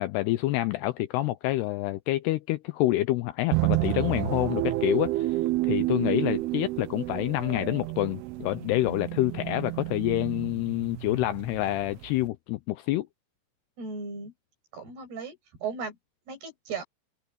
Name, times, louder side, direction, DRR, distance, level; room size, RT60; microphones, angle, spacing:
voice 1, 0.0-13.1, left 17 dB, 85° left, 2.5 m, -27 dB
sound 1, 3.5-12.3, right 18 dB, 80° right, 2.4 m, -30 dB
voice 2, 13.8-14.3 14.7-15.9 16.3-16.8, right 5 dB, 60° right, 9.3 m, -36 dB
omnidirectional pair, 5.2 m